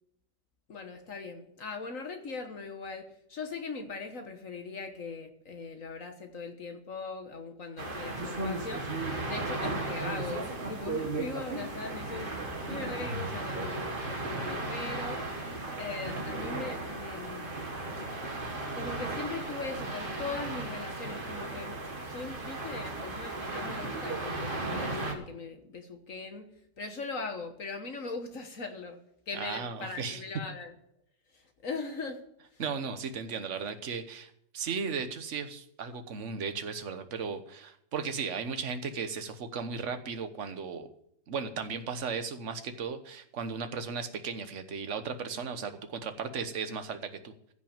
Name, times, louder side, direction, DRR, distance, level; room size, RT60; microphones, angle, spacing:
voice 1, 0.7-8.9 9.2-15.2 15.8-17.6 18.7-26.5 26.8-29.0 29.3-30.7 31.3-32.2 32.5-32.6, left 4 dB, 55° left, 6 dB, 1.6 m, -40 dB
sound 1, 7.8-25.1, right 2 dB, 30° right, 2.0 m, -35 dB
voice 2, 29.3-30.2 32.6-40.9 41.3-47.3, right 5 dB, 50° right, 8 dB, 1.4 m, -36 dB
15.5 x 6.1 x 8.7 m, 0.73 s
omnidirectional pair, 1.8 m